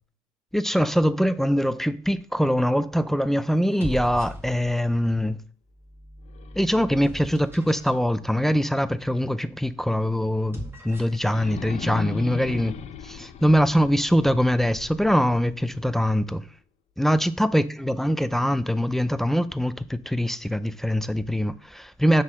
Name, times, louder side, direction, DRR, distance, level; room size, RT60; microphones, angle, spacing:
voice 1, 0.5-5.4 6.6-10.6 10.8-12.8 13.0-16.4 17.0-22.2, equal, ahead, 0.4 m, -23 dB
sound 1, 2.3-2.7 3.6-4.9 5.7-8.0 10.3-11.3, right 1 dB, 15° right, 1.7 m, -39 dB
sound 2, 6.3-9.2 9.7-9.8 11.2-16.2, left 6 dB, 50° left, 0.6 m, -39 dB
6.3 x 3.8 x 6.1 m
cardioid pair, 115°, 14 cm